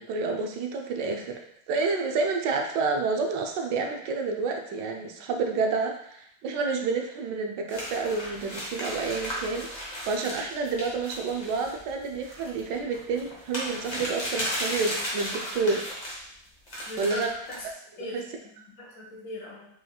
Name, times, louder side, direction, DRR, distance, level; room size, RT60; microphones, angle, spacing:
voice 1, 0.0-1.3 1.7-15.8 17.0-17.4 18.1-18.2, right 4 dB, 80° right, 3 dB, 1.2 m, -29 dB
sound 1, 7.7-16.2 16.7-17.7, equal, 30° left, 0.7 m, -35 dB
voice 2, 16.9-17.6 18.0-19.6, left 2 dB, 80° left, -4 dB, 1.8 m, -40 dB
4.9 x 3.1 x 2.3 m, 0.72 s
omnidirectional pair, 1.9 m